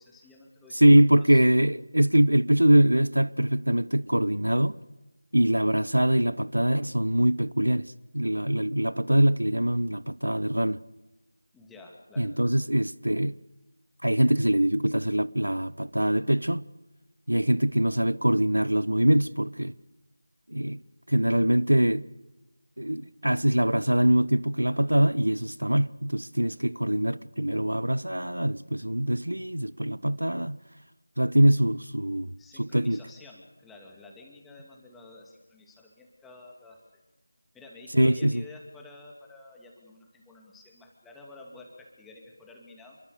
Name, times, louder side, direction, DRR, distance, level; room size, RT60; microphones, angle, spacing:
voice 1, 0.0-0.8 1.1-1.4 11.5-12.5 32.4-36.8 37.5-43.0, left 2 dB, 5° left, 2.6 m, -50 dB
voice 2, 0.7-4.8 5.3-10.8 12.2-13.4 14.0-16.6 17.3-19.7 20.5-20.8 21.1-22.1 22.8-30.6 31.2-33.0 37.9-38.4, right 1 dB, 85° right, 0.9 m, -23 dB
28.5 x 23.0 x 6.7 m
figure-of-eight pair, 165°, 0 cm